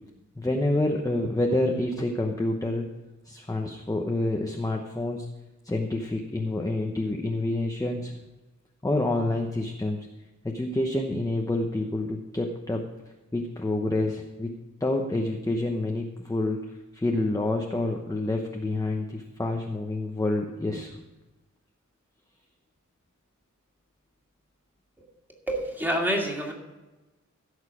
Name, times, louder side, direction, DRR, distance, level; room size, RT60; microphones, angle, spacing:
voice 1, 0.4-2.8 3.2-5.3 5.6-8.2 8.8-10.0 10.4-12.9 13.3-14.5 14.8-21.0, left 2 dB, 10° left, 2 dB, 0.9 m, -28 dB
voice 2, 25.5-26.5, equal, 5° right, -1 dB, 2.4 m, -27 dB
16.0 x 6.6 x 4.9 m, 1.1 s
wide cardioid pair, 130°, 31 cm